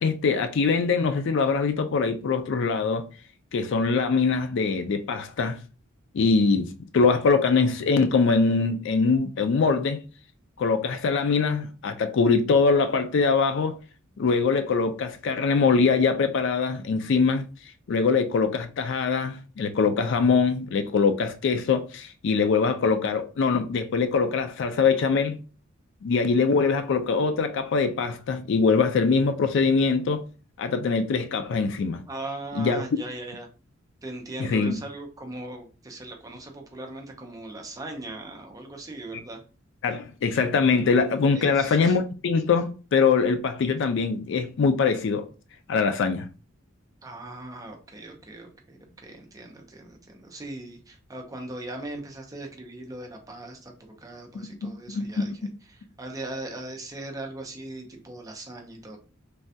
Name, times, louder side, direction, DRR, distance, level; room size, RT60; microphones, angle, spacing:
voice 1, 0.0-3.0 3.5-5.6 6.1-10.0 10.6-13.8 14.2-17.4 17.9-25.4 26.0-30.2 30.6-32.0 32.6-32.8 34.4-34.8 39.8-45.3 45.7-46.3 54.6-55.3, left 4 dB, 60° left, 0.4 m, -23 dB
voice 2, 32.1-33.5 34.0-39.4 41.3-41.9 47.0-53.7 54.0-59.0, right 2 dB, 15° right, 0.5 m, -39 dB
3.2 x 2.2 x 2.6 m
head